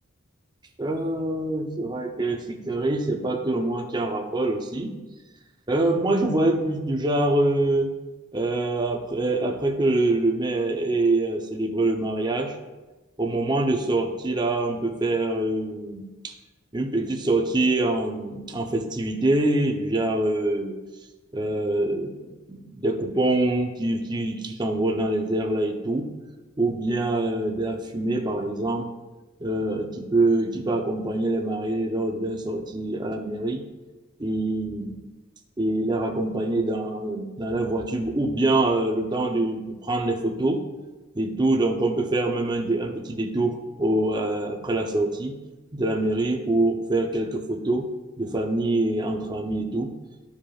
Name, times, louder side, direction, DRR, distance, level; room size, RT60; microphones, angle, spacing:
voice 1, 0.8-4.9 5.7-7.9 8.3-12.6 13.2-16.3 16.7-20.7 21.3-26.1 26.6-28.9 29.4-33.6 34.2-35.0 35.6-40.6 41.1-45.4 45.7-47.9 48.2-49.9, right 2 dB, 20° right, 3 dB, 0.7 m, -25 dB
13.5 x 5.0 x 2.4 m, 1.2 s
head